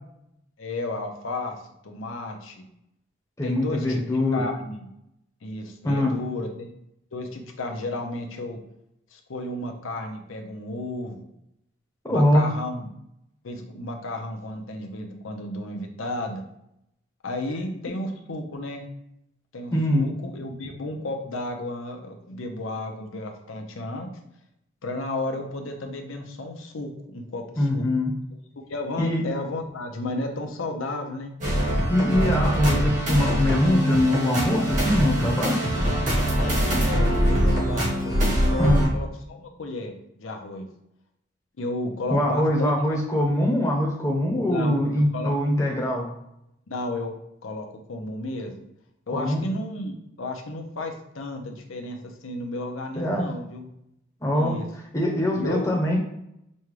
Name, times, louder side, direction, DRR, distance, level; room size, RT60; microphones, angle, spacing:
voice 1, 0.6-1.6 1.8-2.7 3.4-4.0 4.3-4.9 5.4-6.7 7.1-8.6 9.1-11.3 12.1-12.9 13.4-16.4 17.2-18.8 19.5-24.1 24.8-27.8 28.7-31.3 35.7-38.2 38.5-39.9 40.2-40.7 41.6-42.7 44.4-45.3 46.7-47.1 47.4-48.5 49.1-53.7 54.3-54.7 55.4-55.8, left 2 dB, 85° left, 4 dB, 0.7 m, -33 dB
voice 2, 3.4-4.5 5.8-6.2 12.0-12.5 19.7-20.1 27.6-28.1 29.0-29.2 31.9-35.6 38.6-38.8 42.1-46.1 49.1-49.5 52.9-53.3 54.2-54.6 54.9-56.0, left 1 dB, 15° left, -2 dB, 0.7 m, -23 dB
sound 1, 31.4-38.9, equal, 40° right, 1.0 m, -23 dB
5.3 x 2.3 x 3.1 m, 0.80 s
head